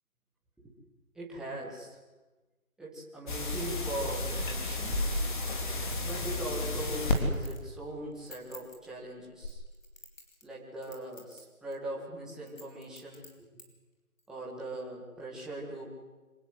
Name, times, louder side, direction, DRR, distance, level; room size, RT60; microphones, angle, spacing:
voice 1, 1.1-2.0 2.8-5.0 6.0-9.6 10.4-13.5 14.3-15.9, right 1 dB, ahead, -5 dB, 1.9 m, -40 dB
sound 1, 3.3-7.2 9.4-9.5, left 2 dB, 35° left, 3.5 m, -32 dB
Chink clink, 5.5-7.7 8.1-8.8 9.4-10.5 10.8-11.4 11.7-11.8 12.5-13.7 14.2-14.3, left 3 dB, 65° left, 5.7 m, -50 dB
25.5 x 19.0 x 8.1 m, 1.2 s
figure-of-eight pair, 165°, 43 cm